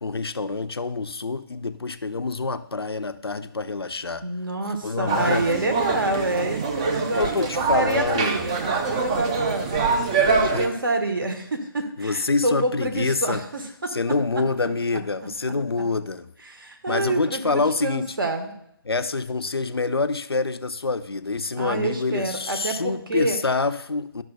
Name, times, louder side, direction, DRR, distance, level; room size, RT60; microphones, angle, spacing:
voice 1, 0.0-4.2 4.8-5.9 7.1-8.3 10.5-10.6 12.0-13.4 13.9-16.3 16.9-18.2 18.9-24.2, left 3 dB, 80° left, 0.5 m, -26 dB
voice 2, 4.2-9.7 10.2-14.0 16.4-18.5 21.6-23.4, right 2 dB, 60° right, 1.2 m, -27 dB
sound 1, 5.1-10.7, right 4 dB, 15° right, 0.4 m, -25 dB
11.5 x 6.0 x 2.3 m
figure-of-eight pair, 145°, 13 cm